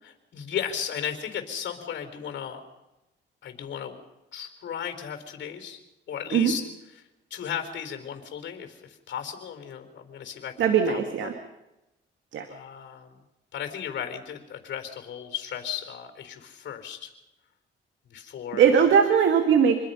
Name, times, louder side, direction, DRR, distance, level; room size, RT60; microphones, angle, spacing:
voice 1, 0.0-2.6 3.4-4.0 4.3-5.8 6.1-6.6 7.3-10.5 10.9-11.3 12.5-13.2 13.5-17.1 18.1-18.9, left 8 dB, 65° left, 6 dB, 4.2 m, -35 dB
voice 2, 10.6-11.3 12.3-12.5 18.5-19.8, right 7 dB, 75° right, 6 dB, 2.1 m, -20 dB
27.0 x 21.5 x 5.7 m, 0.98 s
cardioid pair, 90°, 20 cm